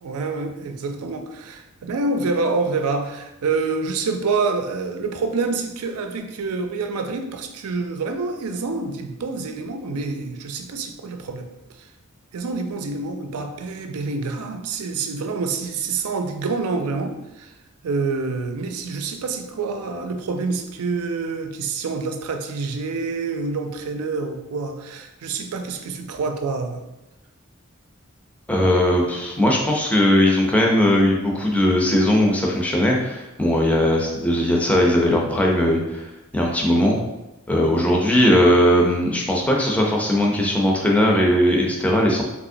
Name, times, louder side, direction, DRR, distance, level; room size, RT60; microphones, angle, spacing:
voice 1, 0.0-11.9 12.3-17.5 17.8-26.8, right 4 dB, 80° right, 0.4 m, -27 dB
voice 2, 28.5-36.1 36.3-37.0 37.5-42.2, left 1 dB, 5° left, 0.4 m, -19 dB
3.4 x 2.9 x 2.5 m
head